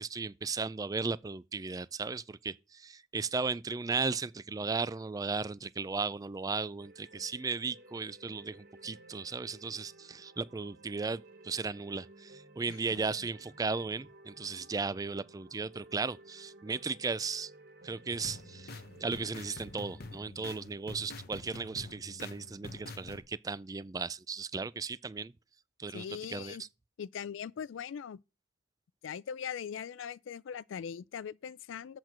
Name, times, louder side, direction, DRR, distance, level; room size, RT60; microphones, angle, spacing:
voice 1, 0.0-17.5 17.8-25.3 25.8-26.6, right 4 dB, 20° right, 0.3 m, -36 dB
sound 1, 6.8-20.3, right 2 dB, 50° right, 1.3 m, -56 dB
voice 2, 12.7-13.1 25.9-26.6 27.0-28.2 29.0-32.0, left 7 dB, 70° left, 0.3 m, -41 dB
sound 2, 18.1-23.2, left 2 dB, 50° left, 1.0 m, -46 dB
8.0 x 4.4 x 6.1 m
head